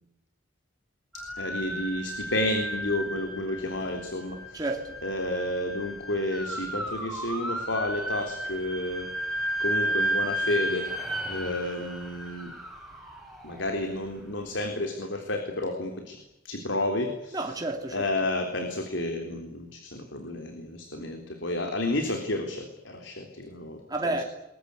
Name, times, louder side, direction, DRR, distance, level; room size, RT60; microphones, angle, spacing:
voice 1, 1.1-4.6 5.0-9.1 9.6-10.9 11.3-12.5 13.4-16.2 16.4-17.4 17.9-23.8, left 1 dB, 75° left, 3.7 m, -31 dB
sound 1, 1.1-14.2, right 1 dB, ahead, 6.4 m, -33 dB
voice 2, 4.5-5.0 17.3-18.1 21.0-21.1 23.9-24.2, right 2 dB, 20° right, 3.0 m, -31 dB
28.5 x 22.0 x 8.4 m
head